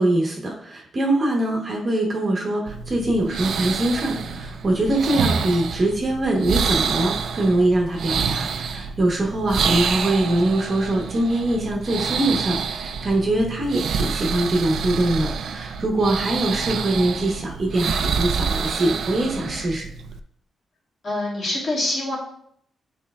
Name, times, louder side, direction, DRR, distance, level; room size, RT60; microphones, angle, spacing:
voice 1, 0.0-19.9, right 1 dB, 30° right, 0 dB, 0.9 m, -23 dB
sound 1, 2.7-20.2, right 6 dB, 60° right, 0.4 m, -27 dB
voice 2, 21.0-22.2, left 1 dB, 40° left, -5 dB, 1.9 m, -25 dB
9.8 x 4.4 x 2.3 m, 0.69 s
wide cardioid pair, 170°, 0 cm